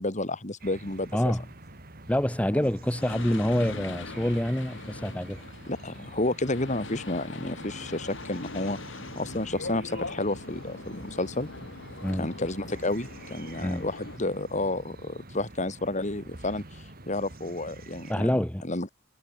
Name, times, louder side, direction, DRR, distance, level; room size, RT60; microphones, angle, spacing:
voice 1, 0.0-1.3 5.7-11.5 12.2-16.6 17.1-18.4 18.6-18.9, left 2 dB, 40° left, 2.7 m, -31 dB
sound 1, 0.6-18.1, right 2 dB, 50° right, 3.4 m, -47 dB
voice 2, 1.1-1.5 2.1-5.4 12.0-12.3 13.6-13.8 18.1-18.6, equal, 5° left, 1.0 m, -26 dB
sound 2, 2.8-14.2, left 2 dB, 65° left, 2.7 m, -41 dB
head